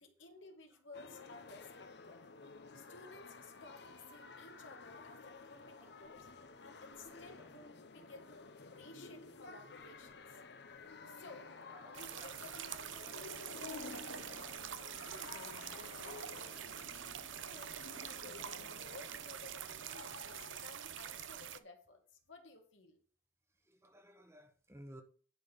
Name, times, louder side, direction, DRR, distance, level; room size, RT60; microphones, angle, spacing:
voice 1, 0.0-2.2 2.7-6.3 6.6-8.4 8.7-10.4 11.1-11.5 11.8-15.6 16.0-22.0 22.3-23.0, left 3 dB, 80° left, 3 dB, 2.0 m, -56 dB
sound 1, 0.9-20.7, left 4 dB, 60° left, 0.8 m, -53 dB
voice 2, 11.7-12.3 13.0-13.2 19.7-19.8 23.8-25.0, equal, 15° right, 6 dB, 1.1 m, -56 dB
sound 2, 11.9-21.6, right 9 dB, 80° right, 0.6 m, -46 dB
11.0 x 3.8 x 7.0 m, 0.44 s
head